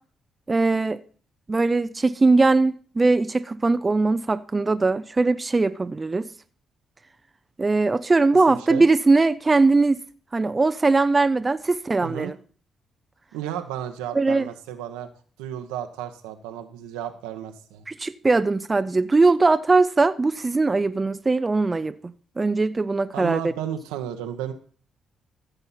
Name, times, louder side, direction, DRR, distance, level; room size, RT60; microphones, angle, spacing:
voice 1, 0.5-1.0 1.5-6.3 7.6-10.0 10.3-12.3 14.1-14.5 17.9-22.0 22.4-23.4, right 3 dB, 30° right, 0.7 m, -20 dB
voice 2, 8.5-8.8 12.0-12.3 13.3-15.1 15.4-17.9 23.1-24.5, right 10 dB, 90° right, 1.2 m, -33 dB
15.0 x 6.9 x 5.8 m
supercardioid pair, 50°, 0 cm